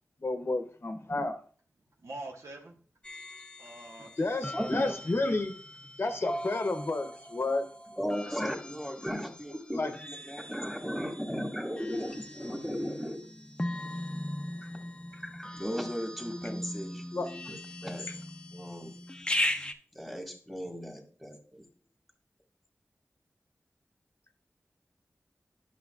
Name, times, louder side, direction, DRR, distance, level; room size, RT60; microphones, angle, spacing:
voice 1, 0.2-1.4 4.2-5.5 6.0-7.7 9.7-9.9 17.1-17.3, left 2 dB, 55° left, 0.8 m, -31 dB
voice 2, 2.0-2.7 3.6-4.9 5.3-5.4 8.2-8.5, right 2 dB, 70° right, 1.1 m, -44 dB
sound 1, 3.0-19.7, left 1 dB, 20° left, 0.6 m, -39 dB
voice 3, 4.5-4.9 8.0-9.8 10.1-13.2 15.1-18.1 18.5-18.9 19.9-21.6, equal, ahead, 1.6 m, -36 dB
10.5 x 6.0 x 2.4 m
wide cardioid pair, 85°, 5 cm